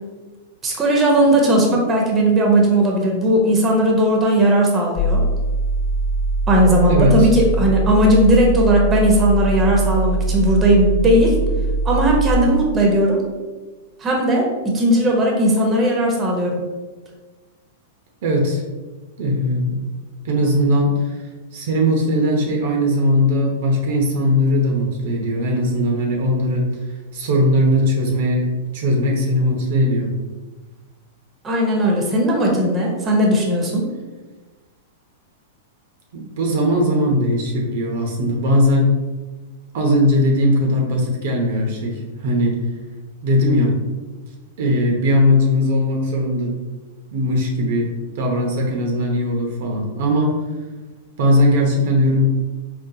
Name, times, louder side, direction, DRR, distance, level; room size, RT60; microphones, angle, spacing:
voice 1, 0.6-5.2 6.5-11.4 11.8-13.2 14.0-16.6 31.4-33.9, right 1 dB, 20° right, 0 dB, 0.8 m, -17 dB
sound 1, 5.0-12.3, right 2 dB, 35° left, 0.3 m, -21 dB
voice 2, 6.9-7.3 18.2-18.6 19.2-19.8 20.2-21.2 21.5-26.7 27.1-28.5 28.7-30.1 36.1-38.9 39.7-42.6 43.2-43.8 44.6-46.5 47.1-50.4 51.2-52.3, left 1 dB, 65° right, 0 dB, 0.7 m, -19 dB
3.8 x 2.4 x 2.7 m, 1.3 s
hypercardioid pair, 115°, 0 cm